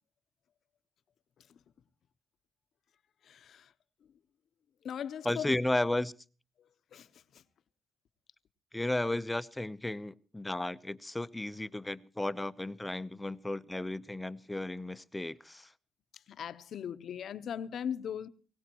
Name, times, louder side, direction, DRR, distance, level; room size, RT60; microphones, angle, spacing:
voice 1, 3.2-3.7 4.0-4.2 4.8-5.6 6.6-7.4 16.1-18.3, left 8 dB, 70° left, 0.9 m, -40 dB
voice 2, 5.2-6.1 8.7-15.7, left 1 dB, 10° left, 0.8 m, -34 dB
21.0 x 18.0 x 3.0 m
cardioid pair, 85°, 0 cm